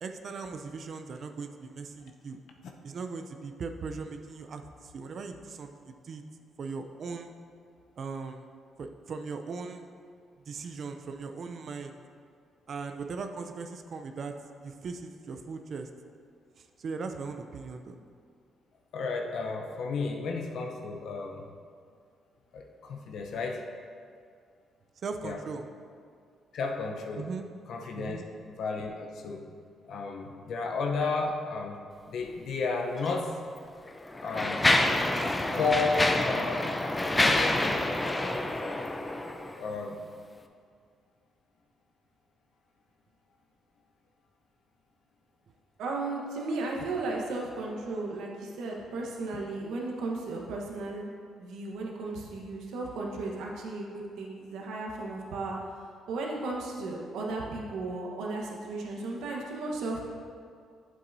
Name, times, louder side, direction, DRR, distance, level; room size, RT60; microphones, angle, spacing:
voice 1, 0.0-2.4 2.8-6.2 6.6-7.3 8.0-8.5 8.8-9.9 10.5-12.0 12.7-14.4 14.6-15.9 16.6-18.0 25.0-25.7 27.2-27.5 27.9-28.2, right 4 dB, 55° right, 6 dB, 0.5 m, -39 dB
voice 2, 18.9-21.5 22.5-23.7 25.2-25.4 26.5-27.3 27.7-28.2 28.6-29.5 29.9-31.8 32.1-33.4 34.2-34.7 35.5-36.7 37.2-37.9 39.6-40.0, left 4 dB, 70° left, 2 dB, 0.7 m, -32 dB
Mechanisms, 33.0-33.1 33.9-39.6, left 1 dB, 15° left, 0.5 m, -27 dB
voice 3, 45.8-51.1 51.4-55.6 56.1-60.1, right 2 dB, 85° right, -1 dB, 1.1 m, -35 dB
8.6 x 7.4 x 2.7 m, 2.2 s
cardioid pair, 90°, 0 cm